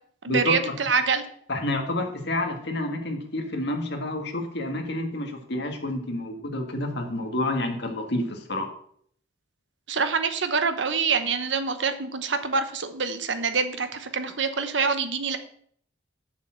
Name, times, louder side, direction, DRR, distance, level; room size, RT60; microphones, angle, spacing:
voice 1, 0.2-1.2 9.9-15.4, right 5 dB, 70° right, 9 dB, 1.1 m, -25 dB
voice 2, 1.5-8.7, left 1 dB, 60° left, 4 dB, 1.7 m, -29 dB
7.1 x 6.5 x 7.6 m, 0.63 s
head